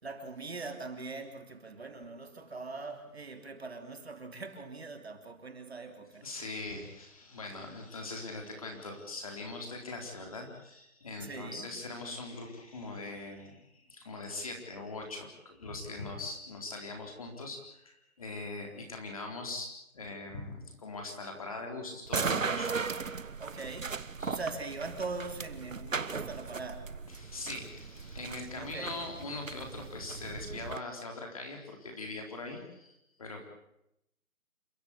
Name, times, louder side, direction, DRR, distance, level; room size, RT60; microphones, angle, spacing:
voice 1, 0.0-6.3 11.2-11.7 23.4-24.0 24.2-26.9 28.6-29.0, right 3 dB, 45° right, 3.3 m, -41 dB
voice 2, 6.2-19.7 19.9-22.7 24.2-24.4 27.1-33.4, left 2 dB, 25° left, 3.9 m, -41 dB
sound 1, 22.1-30.8, right 5 dB, 65° right, 1.3 m, -37 dB
29.0 x 14.5 x 8.4 m
figure-of-eight pair, 175°, 42 cm